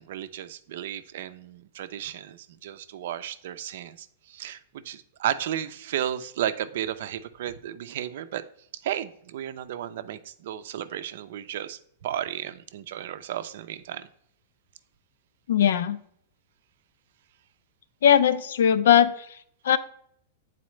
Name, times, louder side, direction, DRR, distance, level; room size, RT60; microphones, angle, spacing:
voice 1, 0.0-8.4 8.7-14.1, right 11 dB, 65° right, 12 dB, 0.4 m, -33 dB
voice 2, 15.5-16.0 18.0-19.1 19.6-19.8, left 9 dB, 80° left, 13 dB, 0.5 m, -19 dB
8.6 x 4.1 x 3.1 m, 0.66 s
supercardioid pair, 155°, 0 cm